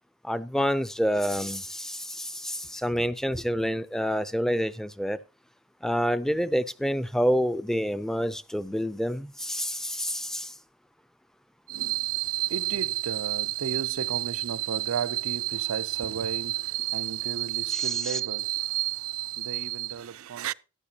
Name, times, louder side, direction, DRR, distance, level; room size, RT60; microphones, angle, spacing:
voice 1, 0.2-5.2 5.8-10.5, equal, ahead, 0.4 m, -28 dB
voice 2, 11.7-20.5, right 12 dB, 85° right, 0.4 m, -30 dB
13.5 x 10.5 x 2.8 m
head